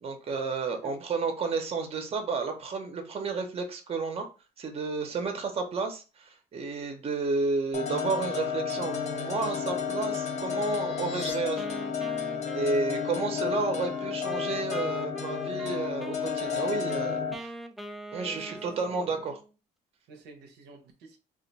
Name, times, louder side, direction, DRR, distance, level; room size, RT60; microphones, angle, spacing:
voice 1, 0.0-4.3 4.6-11.7 12.5-17.5 18.1-19.4, right 4 dB, 35° right, 6 dB, 0.7 m, -31 dB
sound 1, 7.7-17.3, left 7 dB, 45° left, 0.6 m, -32 dB
sound 2, 9.1-11.4, left 5 dB, 80° left, 1.0 m, -47 dB
Wind instrument woodwind instrument, 11.6-19.5, right 1 dB, ahead, 0.3 m, -42 dB
voice 2, 18.2-18.6 19.0-19.2 20.1-21.2, right 4 dB, 80° right, 4 dB, 0.7 m, -49 dB
2.4 x 2.2 x 3.9 m, 0.32 s
cardioid pair, 110°, 17 cm